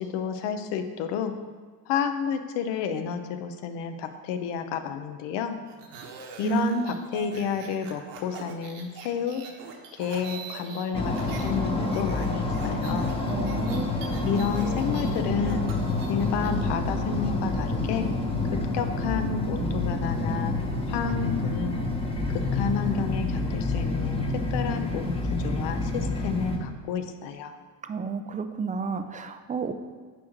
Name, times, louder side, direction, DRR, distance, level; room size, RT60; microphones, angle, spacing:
voice 1, 0.0-1.3 1.9-5.6 6.4-9.4 9.9-13.1 14.3-15.7 16.1-18.1 18.7-20.5 20.9-21.7 22.3-27.5, left 7 dB, 75° left, 8 dB, 0.8 m, -30 dB
sound 1, 5.7-11.5 11.8-16.5, right 5 dB, 75° right, 1.3 m, -43 dB
voice 2, 6.4-7.0 13.3-13.9 27.8-29.7, right 5 dB, 20° right, 9 dB, 0.4 m, -30 dB
sound 2, 10.9-26.6, left 2 dB, 15° left, 1.0 m, -28 dB
9.5 x 3.2 x 6.4 m, 1.5 s
cardioid pair, 110°, 42 cm